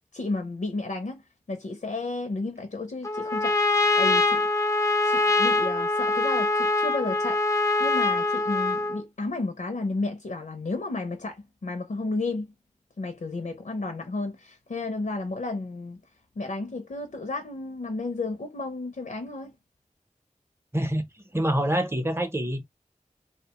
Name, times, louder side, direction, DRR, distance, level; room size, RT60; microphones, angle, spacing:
voice 1, 0.1-1.2 1.5-4.5 5.0-7.4 7.8-12.5 13.0-16.0 16.4-19.5, left 3 dB, 75° left, 0.5 m, -32 dB
Trumpet, 3.0-9.0, left 3 dB, 20° left, 0.4 m, -24 dB
voice 2, 20.7-21.0 21.3-22.6, right 1 dB, 20° right, 0.6 m, -26 dB
2.7 x 2.1 x 2.9 m
wide cardioid pair, 45°, 14 cm